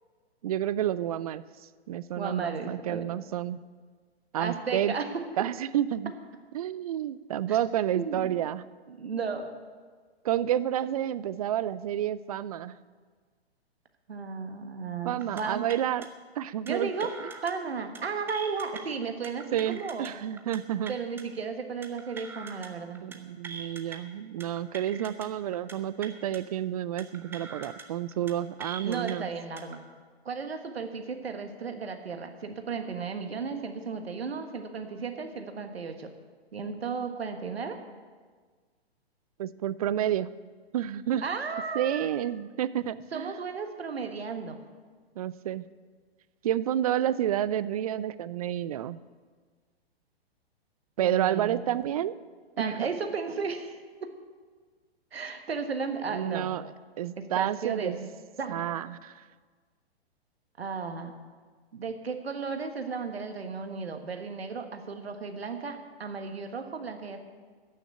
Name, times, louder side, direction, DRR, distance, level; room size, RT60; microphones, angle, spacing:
voice 1, 0.4-1.4 1.9-3.6 4.3-4.9 5.4-6.1 6.5-8.6 10.2-12.7 15.0-16.1 16.4-16.9 19.5-21.0 23.0-29.3 39.4-40.3 40.7-41.2 41.7-43.3 45.2-45.7 46.4-49.0 51.0-52.1 52.6-52.9 56.1-58.1 58.5-59.1, right 11 dB, 35° right, 16 dB, 0.4 m, -30 dB
voice 2, 2.1-3.0 4.4-5.1 7.5-7.6 7.9-8.3 8.9-9.5 14.1-15.7 16.6-17.1 17.4-20.1 20.9-23.0 28.8-29.8 30.2-36.1 36.5-37.8 41.2-42.1 43.1-44.6 51.0-51.8 52.6-53.8 55.1-56.5 57.3-57.9 58.4-58.6 60.6-61.1 61.7-67.2, right 5 dB, 70° right, 6 dB, 1.5 m, -34 dB
sound 1, 15.2-15.4 15.7-16.1 16.7-17.5 17.8-18.0 18.3-18.8 19.2-20.1 20.4-20.6 20.9-21.2 21.8-22.7 23.0-23.2 23.4-24.0 24.4-25.3 25.5-25.7 26.0-26.4 27.0-27.8 28.1-28.3 28.6-29.1 29.6-29.8, right 4 dB, 5° right, 0.7 m, -43 dB
14.5 x 6.5 x 8.0 m, 1.5 s
figure-of-eight pair, 115°, 32 cm